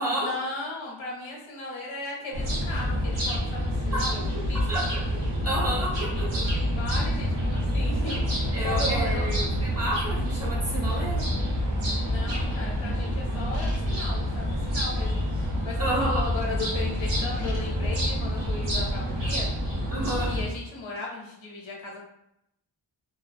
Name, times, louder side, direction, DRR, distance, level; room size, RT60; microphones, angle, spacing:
voice 1, 0.2-4.6 6.7-9.5 12.0-15.2 15.6-19.5 20.3-22.0, left 3 dB, 80° left, -2 dB, 0.8 m, -36 dB
sound 1, 2.3-20.5, equal, 65° right, 0.8 m, -27 dB
voice 2, 4.7-5.0 5.4-6.4 8.5-11.3 15.8-16.2 19.9-20.3, right 1 dB, 30° right, -8 dB, 1.3 m, -30 dB
2.4 x 2.1 x 2.5 m, 0.82 s
wide cardioid pair, 75°, 47 cm